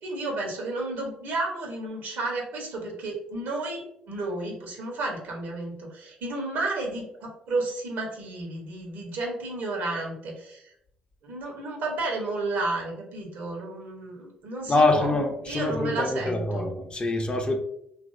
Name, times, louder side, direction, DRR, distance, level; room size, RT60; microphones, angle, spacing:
voice 1, 0.0-10.7 11.2-15.1 15.5-16.7, right 2 dB, 65° right, 0 dB, 1.0 m, -32 dB
voice 2, 14.7-17.6, left 2 dB, 30° left, 3 dB, 0.6 m, -25 dB
3.0 x 2.6 x 2.6 m, 0.74 s
hypercardioid pair, 45°, 4 cm